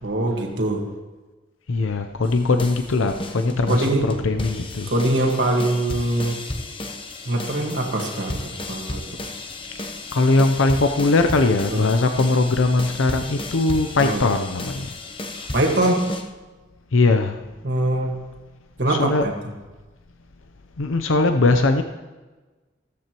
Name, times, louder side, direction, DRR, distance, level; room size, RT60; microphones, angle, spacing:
voice 1, 0.0-0.8 3.7-4.1 4.9-6.4 7.2-9.0 11.7-11.8 14.0-14.2 15.5-16.0 17.6-18.1 18.8-19.3, right 1 dB, 60° right, 1 dB, 1.7 m, -22 dB
voice 2, 1.7-4.9 10.1-14.9 16.9-17.4 18.9-19.3 20.8-21.8, left 3 dB, 90° left, 7 dB, 0.6 m, -20 dB
sound 1, 2.2-16.2, left 2 dB, 25° left, 0.9 m, -33 dB
15.0 x 14.0 x 3.0 m, 1.2 s
head